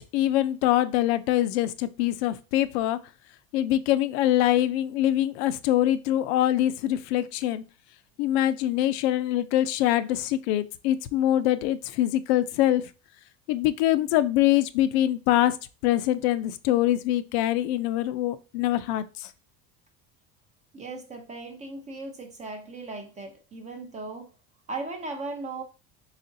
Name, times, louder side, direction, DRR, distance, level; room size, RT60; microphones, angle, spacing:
voice 1, 0.0-3.0 3.5-7.6 8.2-12.9 13.5-15.6 15.8-19.3, left 13 dB, 80° left, 0.5 m, -24 dB
voice 2, 20.7-24.3 24.7-25.6, right 3 dB, 25° right, 0.5 m, -37 dB
4.1 x 3.7 x 2.6 m
cardioid pair, 140°, 31 cm